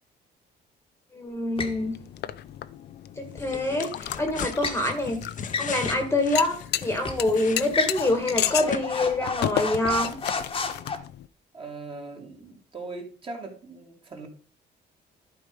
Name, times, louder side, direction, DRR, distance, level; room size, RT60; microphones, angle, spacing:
voice 1, 1.1-2.0 3.2-5.2 5.6-10.2, left 1 dB, 15° left, 5 dB, 1.6 m, -26 dB
sound 1, 1.6-11.3, left 12 dB, 65° left, 0.5 m, -34 dB
Squeaky Shoes, 1.6-1.8 4.0-4.8 5.4-6.1 6.4-6.6 7.0-7.3 7.7-11.0, left 4 dB, 30° left, 1.3 m, -32 dB
sound 2, 3.4-8.3 8.7-8.8, left 7 dB, 45° left, 0.9 m, -37 dB
voice 2, 11.5-14.3, right 3 dB, 30° right, 1 dB, 2.7 m, -40 dB
11.5 x 4.7 x 5.2 m, 0.38 s
cardioid pair, 125°, 19 cm